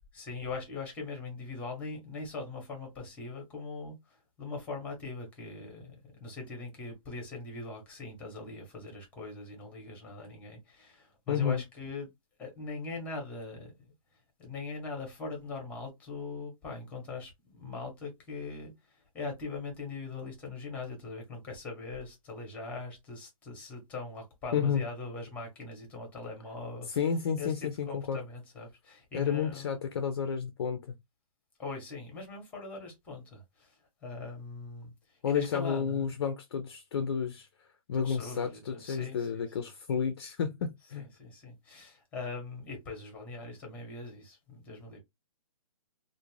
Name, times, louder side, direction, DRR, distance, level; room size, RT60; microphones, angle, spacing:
voice 1, 0.1-12.1 12.4-13.7 14.4-27.0 27.4-29.7 31.6-33.7 34.0-36.2 37.9-39.5 41.0-45.0, left 3 dB, 10° left, 0.8 m, -41 dB
voice 2, 11.3-11.6 24.5-24.8 27.0-28.2 29.1-30.8 35.2-37.5 37.9-41.0, left 7 dB, 45° left, 0.4 m, -31 dB
2.4 x 2.1 x 3.1 m
hypercardioid pair, 160°, 18 cm